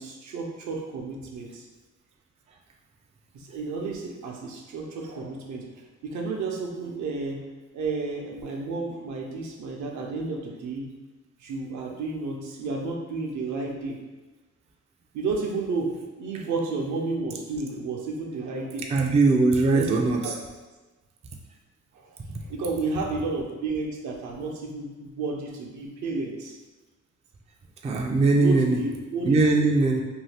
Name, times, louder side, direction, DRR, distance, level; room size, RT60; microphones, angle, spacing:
voice 1, 0.0-1.6 3.3-5.6 6.0-7.5 7.7-10.9 11.4-14.0 15.1-18.9 19.7-20.3 21.9-22.1 22.5-26.6 28.4-29.7, right 3 dB, 70° right, 0 dB, 0.7 m, -31 dB
voice 2, 18.9-20.3 27.8-28.8 29.3-30.0, right 3 dB, 20° right, 1 dB, 0.3 m, -21 dB
2.7 x 2.3 x 3.3 m, 1.2 s
cardioid pair, 90°, 30 cm